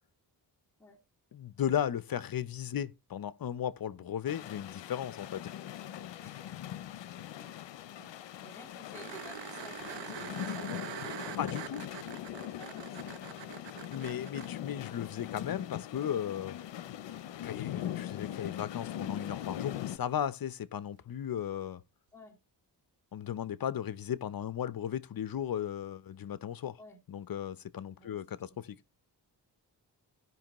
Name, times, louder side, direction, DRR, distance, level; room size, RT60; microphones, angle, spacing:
voice 1, 1.3-5.5 11.4-11.8 13.9-16.6 17.4-21.8 23.1-26.8 27.1-28.8, left 9 dB, 55° left, 0.7 m, -36 dB
sound 1, 4.3-20.0, left 11 dB, 90° left, 0.7 m, -41 dB
voice 2, 7.3-8.1 8.4-11.4 12.6-13.5 22.1-22.4 26.8-27.0 28.0-28.2, left 2 dB, 5° left, 2.5 m, -54 dB
sound 2, 8.9-14.5 17.2-17.3, right 10 dB, 85° right, 0.8 m, -44 dB
16.5 x 5.4 x 3.0 m
cardioid pair, 95°, 42 cm